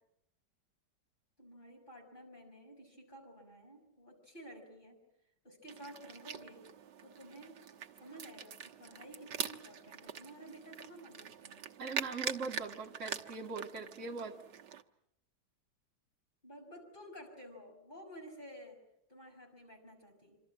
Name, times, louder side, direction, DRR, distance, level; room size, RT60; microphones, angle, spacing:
voice 1, 1.4-5.0 5.4-6.7 7.0-7.6 8.0-11.7 16.4-18.8 19.1-20.4, equal, 25° left, 2 dB, 6.3 m, -53 dB
sound 1, 5.7-14.8, right 8 dB, 75° right, 1.8 m, -44 dB
voice 2, 11.8-14.4, right 4 dB, 45° right, 1 dB, 1.9 m, -41 dB
26.5 x 25.0 x 7.5 m, 0.80 s
omnidirectional pair, 1.9 m